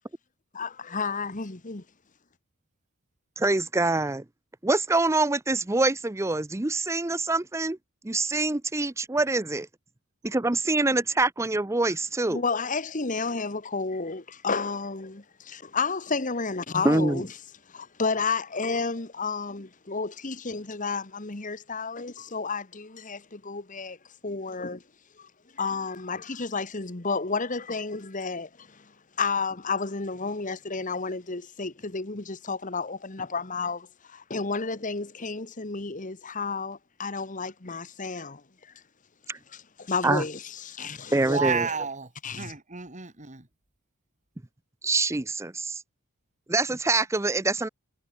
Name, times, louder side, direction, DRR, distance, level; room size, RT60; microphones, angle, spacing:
voice 1, 0.5-1.8 12.3-17.3 17.7-24.0 24.2-24.8 25.2-25.3 25.5-28.9 29.2-38.7 39.5-41.4 42.2-42.5, left 4 dB, 35° left, 1.4 m, -31 dB
voice 2, 3.4-4.2 4.6-7.8 8.0-9.7 10.2-12.4 16.8-17.2 39.3-39.4 40.0-40.2 41.1-41.7 44.8-45.8 46.5-47.7, right 2 dB, 15° right, 0.5 m, -25 dB
voice 3, 41.1-43.5, right 5 dB, 35° right, 2.4 m, -32 dB
head